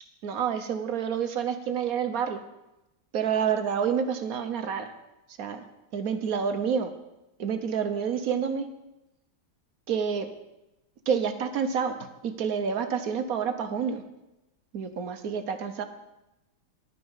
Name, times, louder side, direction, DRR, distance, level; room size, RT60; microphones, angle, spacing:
voice 1, 0.2-2.4 3.1-4.9 5.4-5.7 5.9-6.9 7.4-8.7 9.9-10.3 11.1-14.0 14.7-15.8, right 7 dB, 60° right, 9 dB, 1.2 m, -28 dB
11.0 x 9.1 x 5.5 m, 0.95 s
omnidirectional pair, 1.9 m